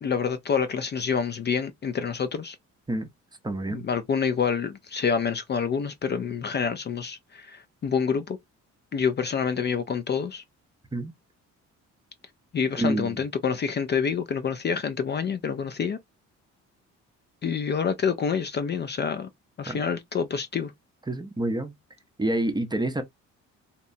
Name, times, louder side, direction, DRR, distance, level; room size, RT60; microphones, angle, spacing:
voice 1, 0.0-2.6 3.7-8.4 8.9-10.4 12.5-16.0 17.4-19.3 19.6-20.7, left 6 dB, 35° left, 0.4 m, -27 dB
voice 2, 3.4-3.9 10.9-11.1 12.8-13.2 19.7-19.8 21.1-21.7 22.2-23.0, right 1 dB, 15° right, 0.6 m, -27 dB
2.8 x 2.2 x 2.5 m
cardioid pair, 90°, 30 cm